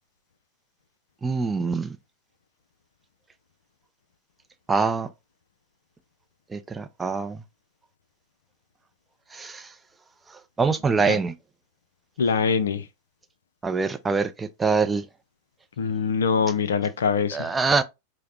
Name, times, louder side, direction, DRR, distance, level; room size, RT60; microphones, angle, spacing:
voice 1, 1.2-1.9 4.7-5.1 6.5-7.4 9.3-9.6 10.6-11.3 13.6-15.0 17.3-17.8, right 4 dB, 15° right, 0.4 m, -24 dB
voice 2, 12.2-12.9 15.8-17.5, left 6 dB, 65° left, 0.4 m, -23 dB
4.7 x 2.0 x 3.0 m
figure-of-eight pair, 90°, 0 cm